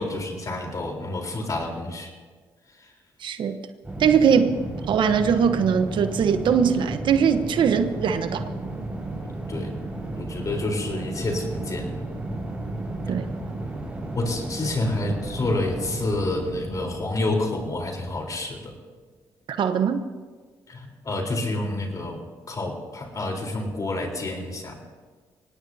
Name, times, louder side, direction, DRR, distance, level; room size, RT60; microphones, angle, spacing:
voice 1, 0.0-2.1 9.5-9.7 10.2-11.9 14.1-18.8 20.7-24.8, left 2 dB, 40° left, 2 dB, 4.1 m, -29 dB
voice 2, 3.2-3.6 4.0-4.5 4.9-8.4 13.1-13.4 19.5-20.0, right 7 dB, 65° right, 9 dB, 1.1 m, -21 dB
sound 1, 3.8-18.2, right 2 dB, 15° right, 5.4 m, -33 dB
24.5 x 18.0 x 2.8 m, 1.5 s
supercardioid pair, 65°, 9 cm